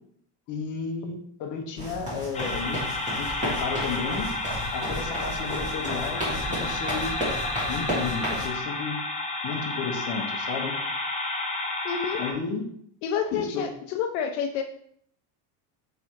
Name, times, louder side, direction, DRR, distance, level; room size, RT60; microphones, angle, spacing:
voice 1, 0.5-2.8 3.2-4.3 4.7-7.2 7.7-9.0 9.4-10.8 12.2-12.6 13.3-13.7, left 5 dB, 40° left, 3 dB, 0.9 m, -33 dB
sound 1, 1.8-8.5, equal, 15° right, 1.7 m, -33 dB
sound 2, 2.3-12.3, left 2 dB, 15° left, 0.6 m, -31 dB
voice 2, 11.8-12.2 13.0-14.6, left 7 dB, 75° left, 5 dB, 0.6 m, -29 dB
3.6 x 3.4 x 4.3 m, 0.67 s
cardioid pair, 145°, 47 cm